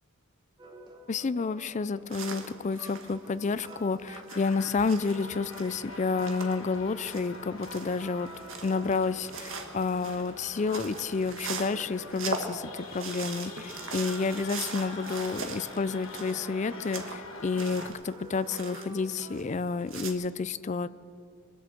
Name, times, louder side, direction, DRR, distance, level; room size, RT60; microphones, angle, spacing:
sound 1, 0.6-19.7, right 1 dB, 20° right, 1.5 m, -50 dB
voice 1, 1.1-8.3 8.6-20.9, left 4 dB, 35° left, 16 dB, 0.4 m, -30 dB
sound 2, 2.1-7.4 7.6-19.6 19.9-20.1, right 5 dB, 70° right, 1.5 m, -41 dB
sound 3, 4.3-17.9, left 2 dB, 80° left, 1.6 m, -45 dB
22.5 x 8.0 x 7.6 m, 2.4 s
head